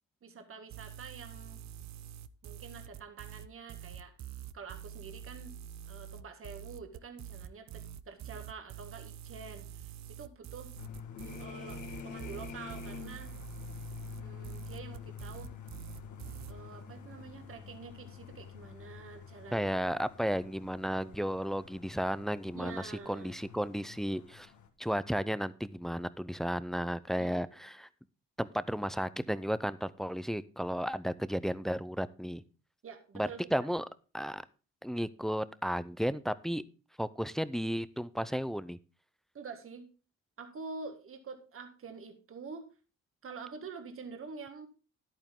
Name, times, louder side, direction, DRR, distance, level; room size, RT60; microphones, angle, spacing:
voice 1, 0.2-1.6 2.4-4.1 4.5-5.5 5.8-10.7 11.4-13.4 14.2-15.5 16.5-19.7 22.5-23.5 27.2-27.5 32.8-33.7 39.3-39.9 40.4-42.7 43.2-44.7, right 5 dB, 45° right, 6 dB, 1.8 m, -47 dB
sound 1, 0.7-16.5, right 10 dB, 65° right, 0.7 m, -46 dB
sound 2, 10.8-24.7, left 7 dB, 75° left, 1.7 m, -47 dB
voice 2, 19.5-24.5 24.8-27.9 28.4-32.4 33.1-33.9 34.1-34.4 34.8-36.6 37.0-38.8, equal, ahead, 16 dB, 0.5 m, -33 dB
10.5 x 9.1 x 3.7 m, 0.35 s
cardioid pair, 90°, 30 cm